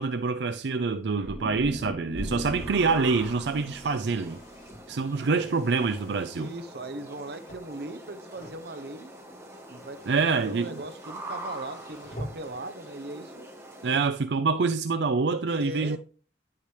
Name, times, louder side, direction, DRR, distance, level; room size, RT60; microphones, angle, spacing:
voice 1, 0.0-4.4 4.9-6.5 10.1-10.7 13.8-16.0, right 4 dB, 75° right, 0.5 m, -26 dB
sound 1, 1.2-5.5, equal, 15° left, 3.5 m, -39 dB
sound 2, 2.2-14.0, right 1 dB, 15° right, 1.6 m, -44 dB
Car, 2.4-12.7, equal, 55° left, 5.8 m, -48 dB
voice 2, 6.3-9.1 9.7-13.5 15.5-16.0, right 2 dB, 60° right, 0.9 m, -39 dB
10.5 x 8.5 x 3.3 m
head